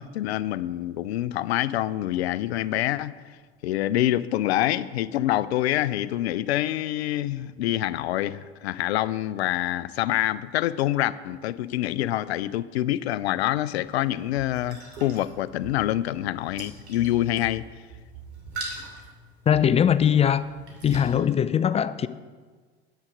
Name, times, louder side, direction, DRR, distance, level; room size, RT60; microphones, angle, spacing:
voice 1, 0.0-3.1 3.6-17.7, left 14 dB, 75° left, 0.5 m, -26 dB
sound 1, 13.8-21.1, right 3 dB, 80° right, 2.8 m, -42 dB
voice 2, 19.5-20.5 20.8-22.1, left 9 dB, 20° left, 0.4 m, -21 dB
9.6 x 9.0 x 5.1 m
hypercardioid pair, 70°, 33 cm